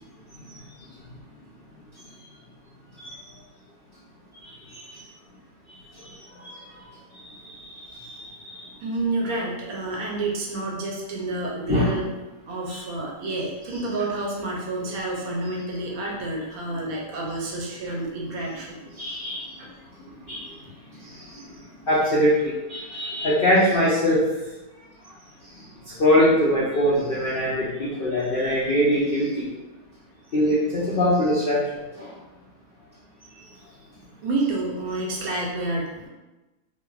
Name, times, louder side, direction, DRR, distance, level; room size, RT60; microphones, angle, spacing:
voice 1, 4.3-4.9 5.9-6.8 7.1-8.7 11.7-11.9 12.7-12.8 18.9-19.5 20.0-20.6 21.0-24.3 25.4-29.5 30.3-31.7 32.0-32.1, equal, 80° left, -8 dB, 0.5 m, -24 dB
voice 2, 8.8-12.1 12.5-18.7 19.6-19.7 34.2-36.1, right 2 dB, 70° right, -2 dB, 1.0 m, -29 dB
3.1 x 2.0 x 2.3 m, 1.1 s
omnidirectional pair, 1.7 m